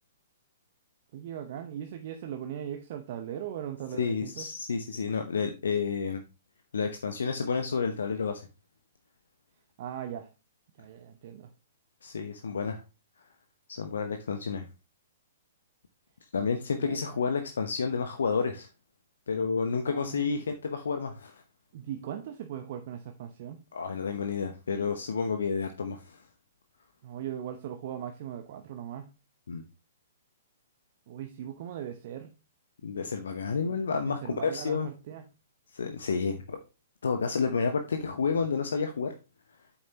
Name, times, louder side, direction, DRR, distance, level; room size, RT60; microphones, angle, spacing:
voice 1, 1.1-4.5 9.8-10.3 10.8-11.5 16.8-17.3 19.9-20.4 21.7-23.6 27.0-29.1 31.1-32.3 33.6-35.2, right 10 dB, 45° right, 6 dB, 0.9 m, -39 dB
voice 2, 3.9-6.2 6.7-8.5 12.0-12.8 13.7-14.7 16.3-18.7 19.3-21.4 23.7-26.2 29.5-29.6 32.8-34.9 35.7-36.6 37.0-39.1, left 5 dB, 65° left, 6 dB, 0.9 m, -30 dB
8.7 x 7.1 x 2.9 m, 0.31 s
figure-of-eight pair, 115°, 0 cm